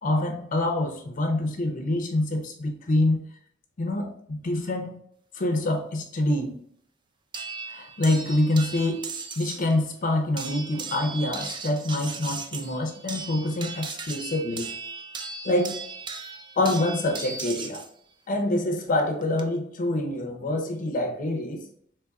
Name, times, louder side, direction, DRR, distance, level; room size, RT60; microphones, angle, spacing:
voice 1, 0.0-3.2 3.8-5.0 5.3-6.6 7.7-9.0 9.4-14.7 15.4-15.8 16.6-17.8 18.3-21.6, left 1 dB, 45° left, 4 dB, 0.5 m, -26 dB
sound 1, 7.3-9.7 10.4-17.9 19.0-19.4, right 4 dB, 25° right, 0.3 m, -37 dB
4.0 x 3.0 x 2.3 m, 0.67 s
head